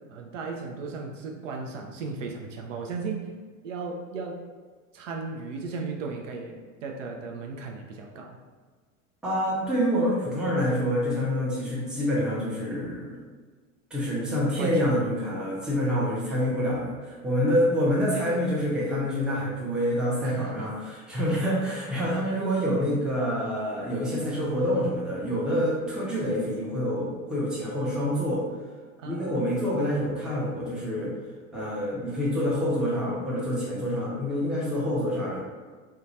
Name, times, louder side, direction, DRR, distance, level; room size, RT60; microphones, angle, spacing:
voice 1, 0.1-3.3 3.6-4.4 4.9-8.4 14.6-14.9 15.9-16.0 20.2-20.7 29.0-29.3, right 4 dB, 65° right, 1 dB, 0.5 m, -36 dB
voice 2, 9.2-13.2 13.9-28.4 29.0-31.1 31.5-35.4, equal, ahead, -6 dB, 0.5 m, -27 dB
2.7 x 2.2 x 2.7 m, 1.4 s
figure-of-eight pair, 80°, 42 cm